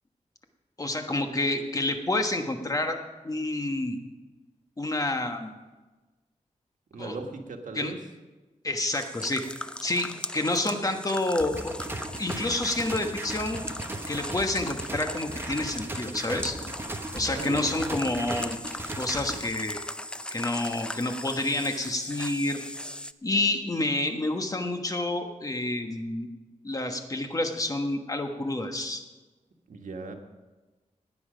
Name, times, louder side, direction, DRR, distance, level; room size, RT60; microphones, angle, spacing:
voice 1, 0.8-3.0 3.2-4.0 4.8-5.5 7.0-7.1 7.7-7.9 8.6-9.4 9.8-11.7 12.2-13.6 14.1-16.6 17.1-18.6 18.9-19.8 20.3-22.6 23.2-26.3 26.6-29.0, left 2 dB, 25° left, 5 dB, 1.3 m, -28 dB
voice 2, 6.9-8.0 17.3-17.7 29.7-30.1, right 3 dB, 85° right, 3 dB, 1.6 m, -37 dB
sound 1, 8.9-23.1, left 1 dB, 5° left, 0.4 m, -39 dB
sound 2, 11.4-19.4, right 1 dB, 15° right, 1.1 m, -37 dB
17.5 x 9.7 x 5.1 m, 1.2 s
wide cardioid pair, 135°, 13 cm